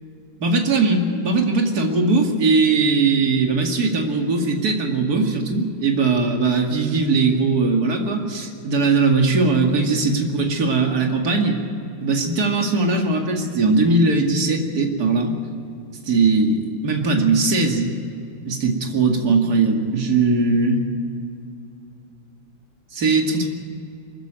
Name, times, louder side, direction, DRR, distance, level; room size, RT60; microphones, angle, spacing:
voice 1, 0.4-11.6 12.0-15.3 16.1-17.9 18.4-20.7 22.9-23.5, right 3 dB, 50° right, 2 dB, 2.7 m, -19 dB
24.0 x 14.5 x 9.0 m, 2.5 s
omnidirectional pair, 2.2 m